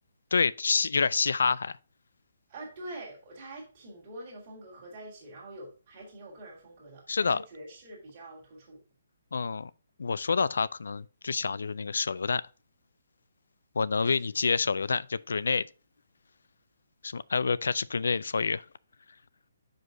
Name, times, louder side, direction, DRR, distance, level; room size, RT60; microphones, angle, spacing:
voice 1, 0.3-1.8 7.1-7.4 9.3-9.7 10.0-12.4 13.8-15.7 17.0-18.6, left 5 dB, 70° left, 0.3 m, -27 dB
voice 2, 2.5-8.8 14.0-14.3, right 1 dB, 20° right, 1.9 m, -45 dB
6.2 x 5.1 x 3.8 m
hypercardioid pair, 180°, 0 cm